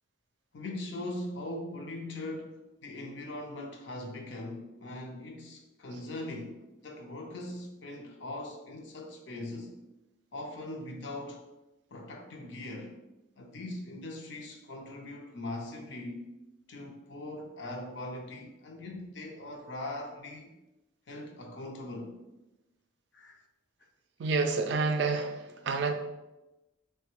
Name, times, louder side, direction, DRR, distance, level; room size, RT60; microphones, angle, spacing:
voice 1, 0.5-9.7 10.3-11.5 11.9-13.0 13.4-16.3 16.7-20.6 21.1-22.2 23.1-23.4, left 1 dB, 65° left, 2 dB, 0.5 m, -41 dB
voice 2, 24.2-25.9, right 4 dB, 60° right, 6 dB, 0.3 m, -29 dB
3.3 x 2.2 x 2.9 m, 1.0 s
head